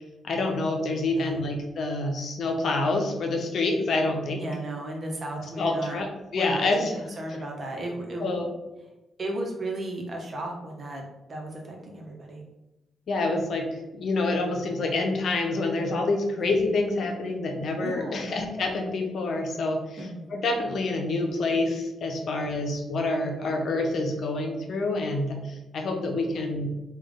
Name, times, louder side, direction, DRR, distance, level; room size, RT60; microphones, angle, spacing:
voice 1, 0.2-4.4 5.6-7.0 8.2-8.5 13.1-20.0 20.3-26.7, left 2 dB, 65° left, 2 dB, 0.7 m, -27 dB
voice 2, 1.1-1.5 4.3-6.0 6.3-6.7 6.9-8.3 9.2-11.0 11.3-12.4 16.3-16.5 17.8-18.4 20.0-20.3 22.2-22.5 26.3-26.4, right 1 dB, 50° right, 0 dB, 0.9 m, -35 dB
3.4 x 2.4 x 3.6 m, 1.0 s
supercardioid pair, 50°, 0 cm